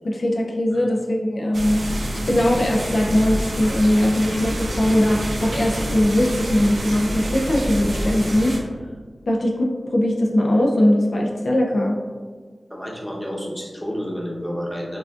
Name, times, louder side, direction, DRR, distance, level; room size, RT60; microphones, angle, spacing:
voice 1, 0.0-1.8 2.3-8.5 9.3-11.9, left 1 dB, 70° left, -1 dB, 0.5 m, -20 dB
sound 1, 1.5-8.6, right 1 dB, 75° right, 0.6 m, -27 dB
voice 2, 12.7-15.0, equal, 5° left, -3 dB, 0.9 m, -30 dB
5.8 x 2.4 x 2.4 m, 1.5 s
wide cardioid pair, 60°, 0 cm